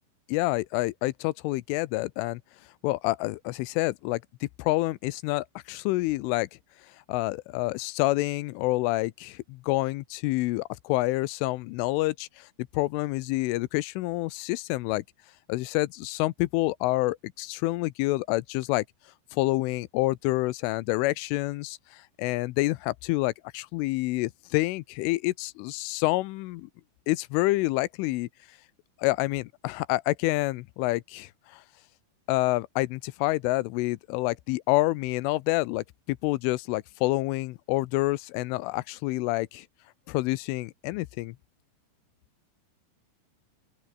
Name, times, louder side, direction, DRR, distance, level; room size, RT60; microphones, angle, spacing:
voice 1, 0.3-2.4 2.8-4.2 4.6-6.5 7.1-12.5 12.7-15.0 15.5-18.8 19.3-26.7 27.1-28.3 29.0-31.6 32.3-39.7 40.1-41.4, left 20 dB, 90° left, 3.3 m, -28 dB
open air
omnidirectional pair, 5.5 m